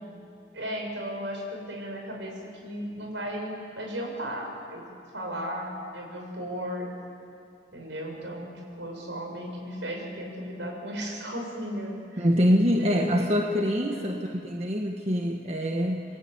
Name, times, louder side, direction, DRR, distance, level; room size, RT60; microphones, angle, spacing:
voice 1, 0.5-4.8 5.1-6.9 7.7-12.3 12.8-13.2 13.9-14.1, equal, 75° right, 1 dB, 6.5 m, -35 dB
voice 2, 12.2-16.0, equal, 35° right, 1 dB, 1.4 m, -25 dB
28.0 x 21.5 x 8.9 m, 2.5 s
head